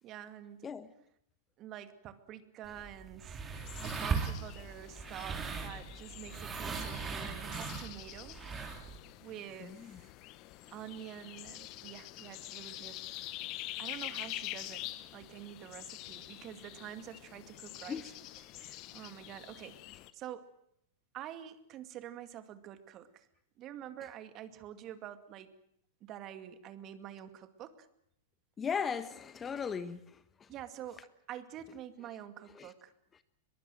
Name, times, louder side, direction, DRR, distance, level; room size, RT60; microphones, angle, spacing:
voice 1, 0.0-0.7 1.6-3.4 3.8-8.4 9.2-10.1 10.7-13.0 13.8-18.0 18.6-19.8 20.1-20.5 21.1-23.3 23.6-25.5 26.0-27.9 30.5-32.9, right 11 dB, 40° right, 2.3 m, -47 dB
sound 1, 2.6-9.0, right 5 dB, 20° right, 3.7 m, -39 dB
sound 2, 3.5-20.1, left 16 dB, 45° left, 1.3 m, -46 dB
voice 2, 9.6-10.0 17.9-18.1 28.6-30.5 32.5-32.7, left 6 dB, 20° left, 1.3 m, -38 dB
23.0 x 22.5 x 7.8 m
hypercardioid pair, 105°, 0 cm